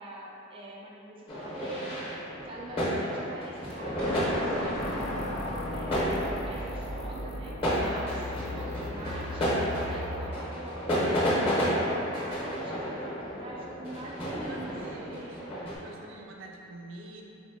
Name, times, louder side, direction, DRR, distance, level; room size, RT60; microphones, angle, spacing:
voice 1, 0.0-2.1 2.4-4.2 4.6-15.3, right 1 dB, 25° right, -3 dB, 0.4 m, -44 dB
sound 1, 1.3-15.7, equal, 30° left, 1.0 m, -32 dB
sound 2, 4.0-8.4, equal, 5° left, 0.7 m, -36 dB
sound 3, 4.8-10.3, left 1 dB, 75° left, 0.4 m, -39 dB
voice 2, 14.3-15.4 15.8-17.2, right 2 dB, 75° right, -1 dB, 0.6 m, -45 dB
4.4 x 4.1 x 2.7 m, 2.8 s
head